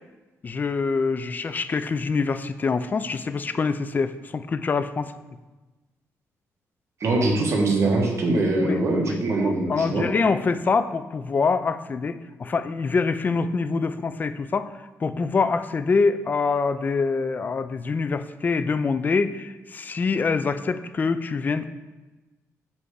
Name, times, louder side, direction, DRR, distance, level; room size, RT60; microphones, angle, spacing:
voice 1, 0.4-5.1 8.6-14.7 15.0-21.6, left 4 dB, 30° left, 12 dB, 0.3 m, -25 dB
voice 2, 7.0-10.1, right 2 dB, 50° right, -1 dB, 1.3 m, -22 dB
7.0 x 3.3 x 4.8 m, 1.2 s
cardioid pair, 125°, 6 cm